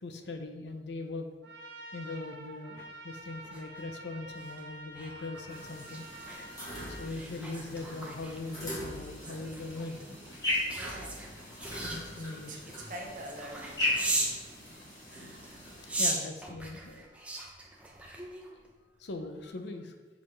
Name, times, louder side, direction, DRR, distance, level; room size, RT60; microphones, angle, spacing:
voice 1, 0.0-1.3 1.9-10.1 11.8-12.8 14.7-14.8 15.3-17.2 18.5-18.6 19.0-19.9, left 2 dB, 70° left, 6 dB, 0.6 m, -41 dB
Trumpet, 1.4-7.1, right 1 dB, 65° right, 1.3 m, -47 dB
sound 1, 3.2-14.4 15.0-18.7 19.1-19.3, right 2 dB, 5° right, 0.7 m, -39 dB
sound 2, 5.5-16.1, left 1 dB, 20° left, 2.0 m, -38 dB
voice 2, 10.7-11.2 12.1-12.6 12.8-14.3, right 1 dB, 45° right, 0 dB, 1.0 m, -45 dB
6.2 x 5.4 x 3.3 m, 1.3 s
head